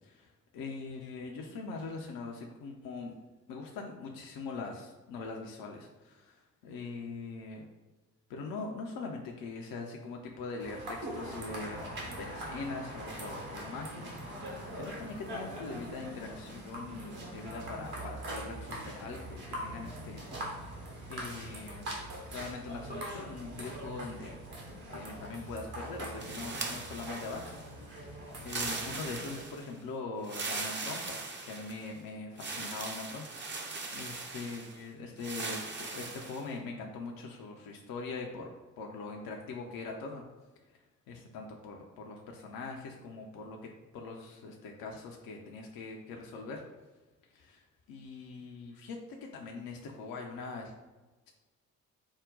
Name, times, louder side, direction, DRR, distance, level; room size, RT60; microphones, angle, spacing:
voice 1, 0.0-3.1 3.5-7.7 8.3-11.8 12.2-20.3 20.7-20.8 21.1-21.8 22.3-27.6 28.4-31.2 31.4-38.5 38.8-40.2 41.1-46.6 47.3-50.7, left 3 dB, 50° left, 1 dB, 0.6 m, -42 dB
sound 1, 10.6-29.4, right 1 dB, 60° right, 1.2 m, -42 dB
sound 2, 26.2-27.7 28.4-29.7 30.2-31.9 32.4-34.8 35.2-36.5, right 3 dB, 25° right, 0.7 m, -39 dB
5.0 x 2.2 x 3.7 m, 1.2 s
figure-of-eight pair, 45°, 43 cm